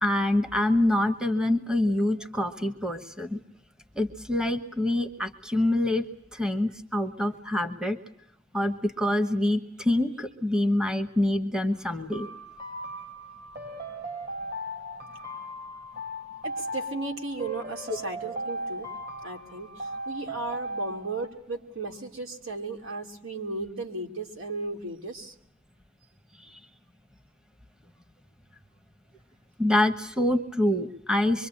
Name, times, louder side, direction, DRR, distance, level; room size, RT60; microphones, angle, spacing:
voice 1, 0.0-3.4 3.9-6.0 6.3-8.0 8.5-12.3 17.9-18.0 26.4-26.5 29.6-31.5, left 1 dB, 5° right, 8 dB, 1.1 m, -26 dB
sound 1, 11.7-21.3, right 1 dB, 45° right, 6.8 m, -37 dB
voice 2, 16.4-18.9 19.2-25.3, right 2 dB, 70° right, 3 dB, 2.9 m, -35 dB
25.0 x 24.0 x 8.5 m, 0.71 s
head